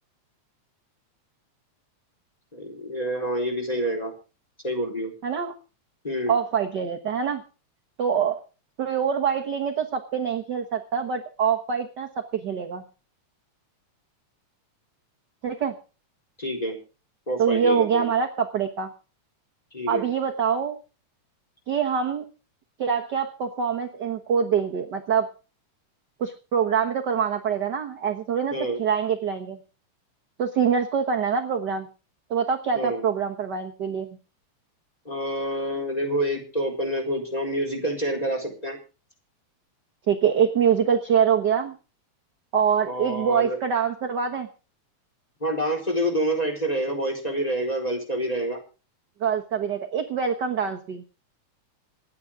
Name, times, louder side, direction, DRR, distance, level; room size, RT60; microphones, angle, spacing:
voice 1, 2.5-4.1 4.6-5.1 6.0-6.3 16.4-16.8 17.3-18.1 19.7-20.0 28.5-28.8 32.7-33.0 35.0-38.8 42.8-43.6 45.4-48.6, right 1 dB, 10° left, 1 dB, 4.3 m, -27 dB
voice 2, 5.2-5.5 6.3-7.4 8.0-8.4 8.8-12.8 15.4-15.7 17.4-18.9 19.9-20.8 21.7-22.2 22.8-25.3 26.2-29.6 30.4-31.9 32.3-34.1 40.1-41.7 42.5-44.5 49.2-51.0, right 7 dB, 50° right, 4 dB, 1.3 m, -24 dB
27.0 x 9.6 x 3.7 m, 0.35 s
omnidirectional pair, 3.4 m